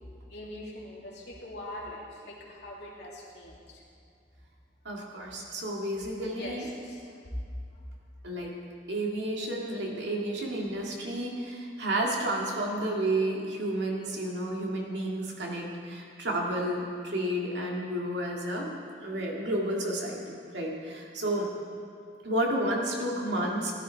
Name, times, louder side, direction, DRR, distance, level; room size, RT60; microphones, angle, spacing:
voice 1, 0.3-3.8 6.2-7.4, left 1 dB, 65° left, -4 dB, 2.7 m, -42 dB
voice 2, 4.8-6.6 8.2-8.5 8.9-18.7 19.0-21.5 22.2-23.7, right 1 dB, 70° right, -1 dB, 2.1 m, -31 dB
15.0 x 11.0 x 4.6 m, 2.4 s
head